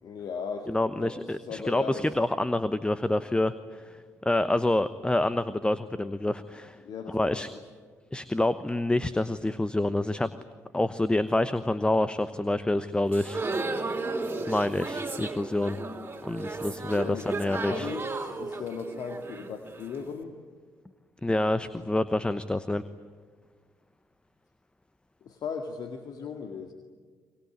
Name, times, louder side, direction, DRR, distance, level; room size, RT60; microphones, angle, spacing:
voice 1, 0.0-0.7 1.0-2.1 6.8-7.5 16.7-17.3 17.6-20.3 25.2-26.7, left 5 dB, 60° left, 5 dB, 2.1 m, -37 dB
voice 2, 0.7-6.8 7.1-7.5 8.1-10.3 10.7-13.4 14.5-15.8 16.2-17.9 21.2-22.8, left 1 dB, 10° left, 14 dB, 1.0 m, -27 dB
sound 1, 13.1-20.1, right 3 dB, 25° right, 3.4 m, -34 dB
24.0 x 22.0 x 9.6 m, 1.5 s
hypercardioid pair, 50°, 8 cm